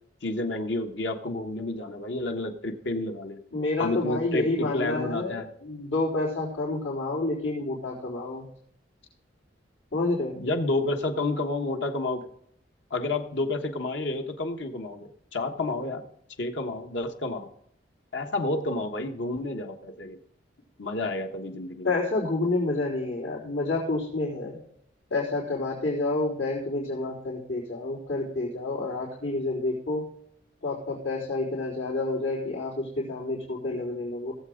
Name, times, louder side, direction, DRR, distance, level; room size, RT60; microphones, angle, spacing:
voice 1, 0.2-3.4 3.8-5.5 10.4-12.3 12.9-16.0 16.4-17.5 18.1-20.2 20.8-21.9, left 2 dB, 70° left, 4 dB, 1.2 m, -30 dB
voice 2, 3.5-8.5 9.9-10.4 21.8-24.6 25.1-30.0 30.6-34.3, left 2 dB, 90° left, -8 dB, 3.9 m, -29 dB
18.0 x 7.9 x 3.8 m, 0.71 s
head